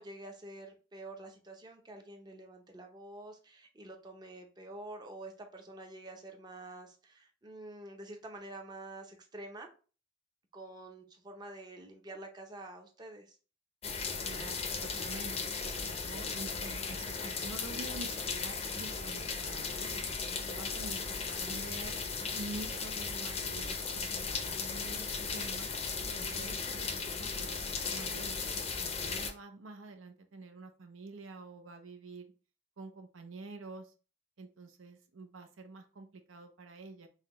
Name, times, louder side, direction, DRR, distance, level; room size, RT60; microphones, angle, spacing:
voice 1, 0.0-9.7 10.5-13.4, right 2 dB, 20° right, 3 dB, 0.6 m, -48 dB
sound 1, 13.8-29.3, left 5 dB, 30° left, 0.5 m, -36 dB
voice 2, 14.3-15.5 15.8-19.9 20.3-22.0 22.3-25.7 26.1-32.3 32.8-33.9 34.4-37.1, right 3 dB, 80° right, 6 dB, 0.7 m, -48 dB
5.6 x 2.2 x 3.0 m, 0.36 s
head